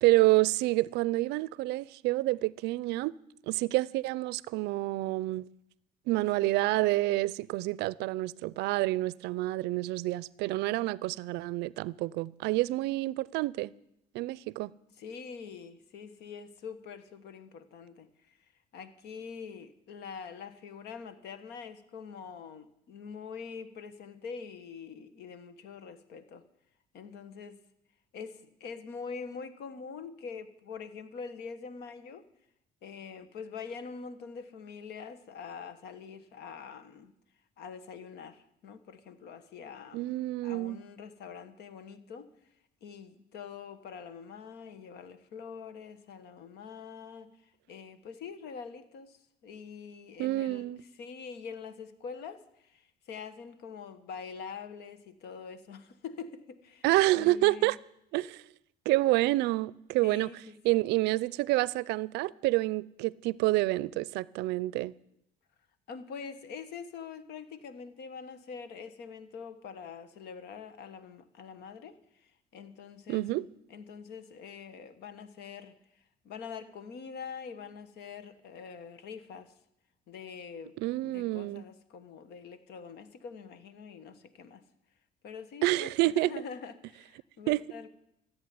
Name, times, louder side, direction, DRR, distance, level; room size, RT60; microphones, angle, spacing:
voice 1, 0.0-3.1 3.5-5.5 6.1-13.7 14.1-14.7 39.9-40.8 50.2-50.8 56.8-57.8 58.1-58.4 58.9-60.3 60.6-64.9 73.1-73.5 80.8-81.6 85.6-86.3 87.5-87.6, right 19 dB, 90° right, 0.4 m, -28 dB
voice 2, 15.0-18.4 18.7-26.4 26.9-27.6 28.1-32.2 32.8-37.1 37.6-40.1 40.4-42.3 42.8-47.3 47.7-50.7 50.9-56.8 57.2-57.8 60.0-60.8 65.9-73.2 73.7-75.7 76.2-79.5 80.1-80.8 81.0-84.6 85.2-85.9 86.1-87.9, left 6 dB, 75° left, 1.3 m, -44 dB
14.5 x 8.2 x 9.6 m
cardioid pair, 110°, 17 cm